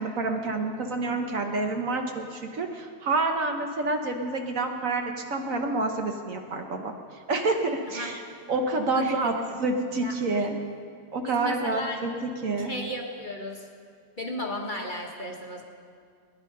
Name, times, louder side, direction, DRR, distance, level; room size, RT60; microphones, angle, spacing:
voice 1, 0.0-6.9 7.3-8.2 8.5-10.6 11.1-12.7, right 3 dB, 60° right, 4 dB, 1.3 m, -28 dB
voice 2, 8.9-9.3 10.0-10.6 11.2-12.0 12.6-13.6 14.2-15.6, left 1 dB, 35° left, 0 dB, 1.2 m, -35 dB
19.0 x 10.5 x 5.3 m, 2.2 s
omnidirectional pair, 1.7 m